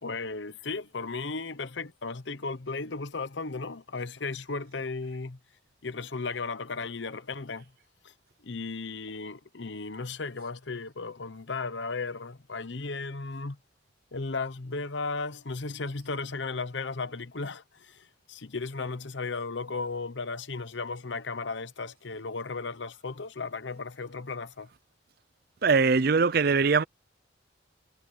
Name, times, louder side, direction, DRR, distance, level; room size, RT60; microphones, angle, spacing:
voice 1, 0.0-5.4 5.8-7.6 8.0-8.1 8.4-13.6 14.1-24.7, left 4 dB, 70° left, 0.9 m, -35 dB
voice 2, 25.6-26.8, right 4 dB, 50° right, 0.5 m, -22 dB
head